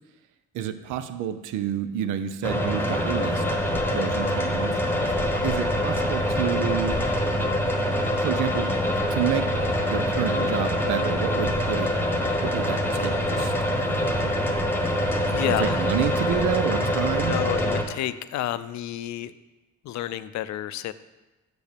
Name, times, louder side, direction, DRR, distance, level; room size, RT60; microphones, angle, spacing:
voice 1, 0.5-3.4 3.7-4.8 5.4-7.0 8.0-8.7 9.1-9.5 9.9-11.9 12.4-13.5 13.8-14.4 15.5-17.4, right 10 dB, 85° right, 10 dB, 0.6 m, -29 dB
sound 1, 2.4-17.8, left 1 dB, 5° left, 1.1 m, -25 dB
voice 2, 4.9-5.3 13.6-13.8 15.3-15.9 17.3-19.3 19.8-20.9, left 13 dB, 65° left, 14 dB, 0.5 m, -30 dB
6.3 x 5.2 x 6.7 m, 1.1 s
cardioid pair, 90°, 30 cm